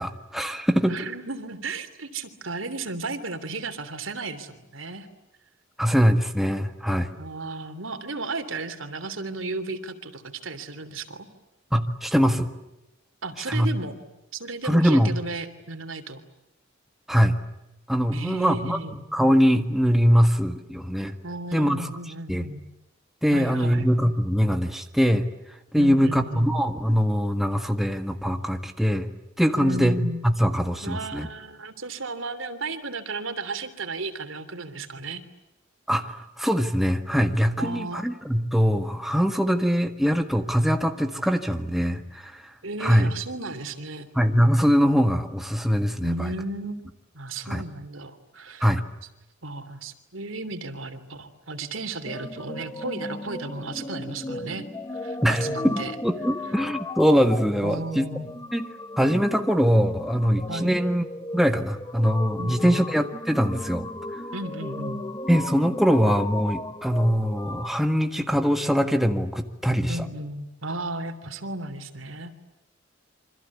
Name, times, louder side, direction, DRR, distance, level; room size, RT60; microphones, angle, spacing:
voice 1, 0.0-0.9 5.8-7.1 11.7-12.5 13.5-13.7 14.6-15.1 17.1-17.3 17.9-18.8 19.1-21.1 21.5-21.9 22.3-22.5 23.2-25.3 25.7-29.1 29.4-30.0 30.2-31.3 35.9-42.5 42.8-43.1 44.1-46.3 47.5-47.6 48.6-48.8 55.2-58.1 58.5-58.7 59.0-61.0 61.3-63.9 65.3-70.1, equal, ahead, 5 dB, 1.8 m, -22 dB
voice 2, 0.9-5.1 7.2-11.3 13.2-14.0 14.3-16.2 18.1-19.0 21.2-22.6 23.3-23.9 25.8-26.5 29.6-30.2 30.8-35.2 37.6-38.0 42.6-44.1 46.0-48.7 49.4-54.7 54.9-55.9 57.6-58.3 60.5-60.8 62.4-62.9 64.3-65.0 69.9-72.3, right 2 dB, 85° right, 9 dB, 3.2 m, -34 dB
sound 1, 52.0-67.7, left 2 dB, 20° left, 1.3 m, -36 dB
28.0 x 25.5 x 8.5 m, 0.94 s
head